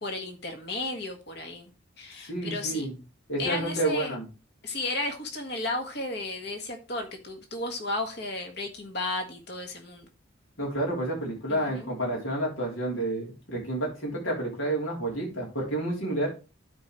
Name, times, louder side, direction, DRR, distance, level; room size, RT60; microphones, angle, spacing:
voice 1, 0.0-1.7 2.0-2.9 3.4-4.1 4.6-10.1 11.5-11.9, left 2 dB, 55° left, 4 dB, 1.6 m, -33 dB
voice 2, 2.3-2.9 3.3-4.2 10.6-16.3, right 1 dB, 85° left, -2 dB, 3.4 m, -30 dB
12.5 x 4.6 x 3.1 m, 0.32 s
head